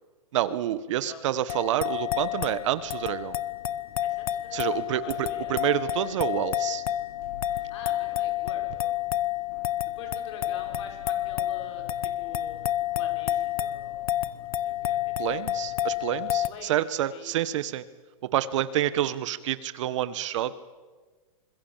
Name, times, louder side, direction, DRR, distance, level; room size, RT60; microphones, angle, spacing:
voice 1, 0.3-3.4 4.5-6.8 15.2-17.8 18.2-20.6, right 12 dB, 60° right, 15 dB, 1.4 m, -28 dB
sound 1, 1.5-16.5, left 12 dB, 80° left, 1.2 m, -30 dB
voice 2, 4.0-5.6 6.0-6.2 7.7-9.0 9.8-12.7 12.9-15.5 16.5-16.7 17.1-17.3, left 5 dB, 55° left, 4 dB, 5.8 m, -46 dB
25.5 x 21.5 x 7.4 m, 1.3 s
hypercardioid pair, 145°, 18 cm